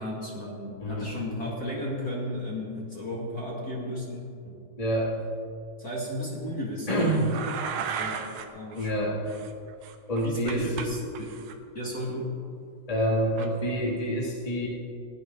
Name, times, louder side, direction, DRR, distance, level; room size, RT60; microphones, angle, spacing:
voice 1, 0.0-4.6 5.8-7.2 7.7-8.3 8.5-9.2 10.2-11.4 11.7-12.3, left 1 dB, 35° left, -5 dB, 1.8 m, -34 dB
voice 2, 4.8-5.1 6.9-7.3 8.7-9.1 10.1-10.6 12.9-14.7, equal, 15° left, -4 dB, 1.1 m, -27 dB
sound 1, 6.9-8.5 8.7-8.9 9.3-10.9 11.1-11.5 13.4-13.5, right 7 dB, 85° right, 1.6 m, -35 dB
17.0 x 11.5 x 3.8 m, 2.4 s
omnidirectional pair, 4.4 m